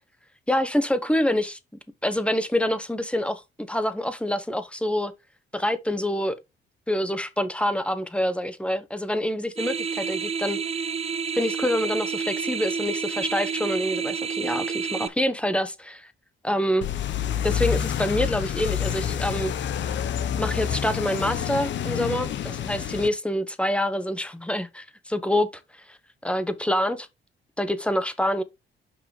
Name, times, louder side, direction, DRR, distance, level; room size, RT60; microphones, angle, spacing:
voice 1, 0.5-1.6 2.0-5.1 5.5-6.4 6.9-10.6 11.3-16.1 16.4-16.9 17.4-19.5 20.4-26.0 26.2-27.1 27.6-28.4, left 1 dB, 5° left, 1.0 m, -26 dB
sound 1, 9.6-15.1, right 6 dB, 30° right, 0.6 m, -29 dB
sound 2, 16.8-23.1, left 9 dB, 70° left, 0.9 m, -28 dB
5.8 x 4.8 x 4.9 m
cardioid pair, 90°, 20 cm